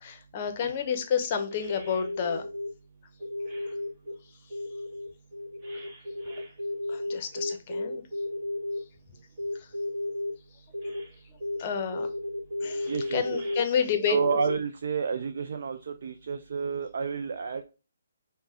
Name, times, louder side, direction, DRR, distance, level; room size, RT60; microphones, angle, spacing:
voice 1, 0.0-2.4 5.7-5.9 6.3-6.4 6.9-8.0 9.5-9.7 10.8-10.9 11.6-12.1 12.6-14.2, left 7 dB, 35° left, 0.7 m, -30 dB
sound 1, 0.9-1.0 1.3-2.7 3.2-4.1 4.5-8.8 9.4-10.3 10.7-11.1 11.4-14.6, left 1 dB, 30° right, 1.8 m, -34 dB
voice 2, 12.9-13.2 14.1-17.6, right 6 dB, 55° right, 0.4 m, -30 dB
5.3 x 2.2 x 3.6 m
figure-of-eight pair, 140°, 0 cm